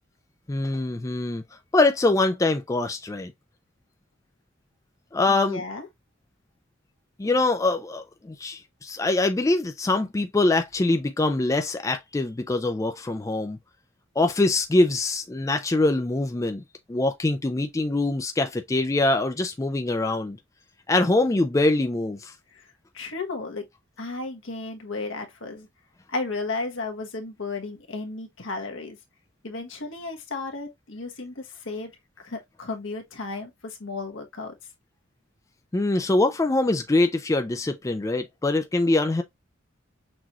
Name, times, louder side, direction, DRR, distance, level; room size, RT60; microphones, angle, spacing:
voice 1, 0.5-1.4 1.7-3.3 5.1-5.6 7.2-13.6 14.2-16.6 16.9-20.4 20.9-22.3 35.7-39.2, left 2 dB, 15° left, 0.3 m, -23 dB
voice 2, 5.3-5.9 22.5-22.7 22.9-23.6 24.0-25.7 26.1-29.0 29.4-31.9 32.2-34.5, left 3 dB, 65° left, 1.2 m, -34 dB
6.0 x 3.0 x 2.3 m
head